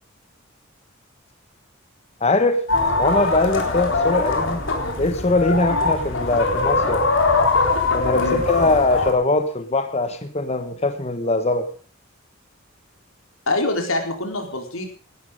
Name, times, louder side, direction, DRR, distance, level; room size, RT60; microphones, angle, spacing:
voice 1, 2.2-2.6 3.0-4.6 5.0-7.0 7.9-11.7, left 2 dB, 30° left, 8 dB, 1.3 m, -21 dB
sound 1, 2.7-9.1, left 3 dB, 65° left, 3.9 m, -22 dB
voice 2, 13.5-14.8, left 2 dB, 90° left, 4 dB, 4.1 m, -24 dB
18.0 x 12.0 x 5.1 m, 0.44 s
head